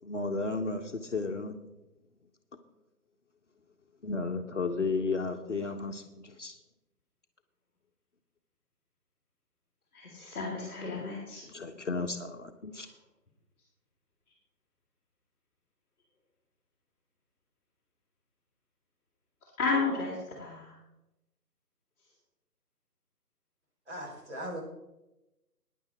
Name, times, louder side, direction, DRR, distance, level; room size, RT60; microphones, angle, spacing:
voice 1, 0.0-1.6 4.0-6.6 11.4-12.9, left 3 dB, 50° left, 5 dB, 1.0 m, -33 dB
voice 2, 9.9-11.4 12.7-12.9 19.6-20.8, left 4 dB, 10° left, -9 dB, 2.1 m, -33 dB
voice 3, 23.9-24.6, right 1 dB, 45° right, -2 dB, 5.1 m, -39 dB
15.0 x 10.0 x 4.3 m, 0.96 s
figure-of-eight pair, 160°, 48 cm